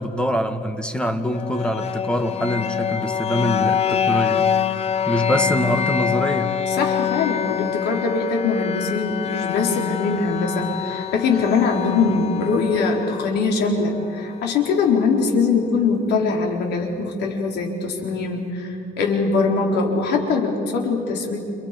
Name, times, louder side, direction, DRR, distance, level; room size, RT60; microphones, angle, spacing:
voice 1, 0.0-6.6, equal, 5° left, 7 dB, 2.0 m, -24 dB
sound 1, 1.3-15.3, left 8 dB, 35° left, 0.8 m, -26 dB
voice 2, 6.7-21.4, left 4 dB, 75° left, 1 dB, 4.6 m, -22 dB
29.5 x 29.5 x 5.4 m, 2.6 s
cardioid pair, 110°, 17 cm